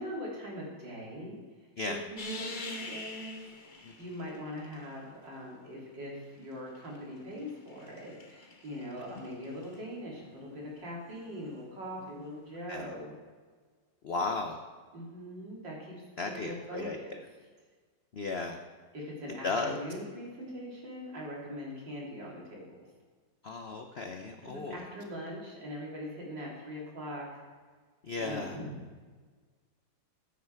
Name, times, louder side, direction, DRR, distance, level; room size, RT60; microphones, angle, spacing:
voice 1, 0.0-13.1 14.9-17.2 18.9-22.8 24.4-27.4 28.2-28.9, equal, 65° right, -4 dB, 3.9 m, -42 dB
sound 1, 2.2-5.3 6.3-9.8 12.2-12.3, left 2 dB, 35° left, 0.9 m, -45 dB
voice 2, 14.0-14.6 16.2-17.0 18.1-18.6 19.4-19.8 23.4-24.8 28.0-28.6, left 3 dB, 55° left, 4 dB, 0.7 m, -35 dB
15.0 x 9.2 x 4.6 m, 1.5 s
omnidirectional pair, 2.1 m